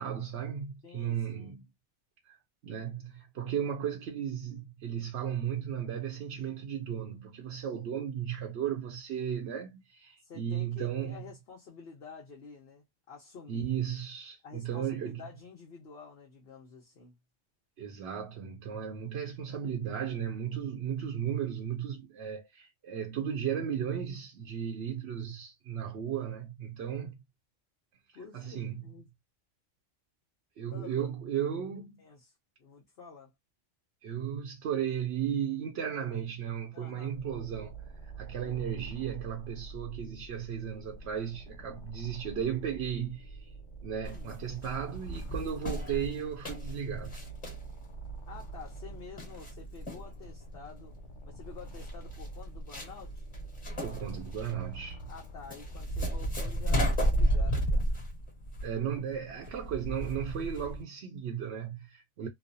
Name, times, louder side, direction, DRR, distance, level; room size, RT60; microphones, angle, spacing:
voice 1, 0.0-1.7 2.3-2.4 2.6-11.2 13.5-15.2 17.8-27.2 28.3-28.8 30.6-32.0 34.0-37.8 38.0-43.5 43.8-47.3 53.8-55.0 58.6-62.3, right 8 dB, 65° right, 0.8 m, -35 dB
voice 2, 0.8-1.6 10.2-13.7 14.4-17.2 28.1-29.1 30.7-31.1 32.0-32.3 32.6-33.3 36.7-37.2 38.4-38.7 44.0-44.3 48.3-50.9 51.2-53.3 55.1-57.9, left 5 dB, 55° left, 1.0 m, -49 dB
sound 1, 37.1-57.1, right 3 dB, 75° left, 1.4 m, -47 dB
sound 2, 44.0-60.8, equal, 25° left, 1.5 m, -33 dB
3.1 x 2.0 x 2.4 m
omnidirectional pair, 1.3 m